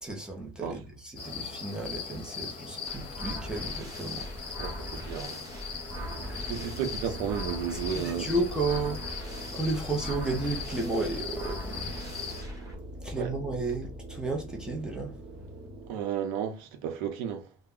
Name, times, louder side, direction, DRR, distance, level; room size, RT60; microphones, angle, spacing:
voice 1, 0.0-4.5 6.3-6.5 7.7-9.0 9.5-11.9 13.0-15.2, right 2 dB, 5° right, 0.5 m, -33 dB
sound 1, 1.2-12.4, left 6 dB, 30° left, 0.8 m, -40 dB
sound 2, 2.8-12.7, equal, 20° right, 1.0 m, -41 dB
voice 2, 4.6-5.4 6.4-8.3 13.1-13.3 15.9-17.5, right 8 dB, 80° right, 0.7 m, -33 dB
sound 3, 5.9-15.9, right 1 dB, 65° right, 1.0 m, -43 dB
2.1 x 2.1 x 3.6 m
cardioid pair, 150°, 17 cm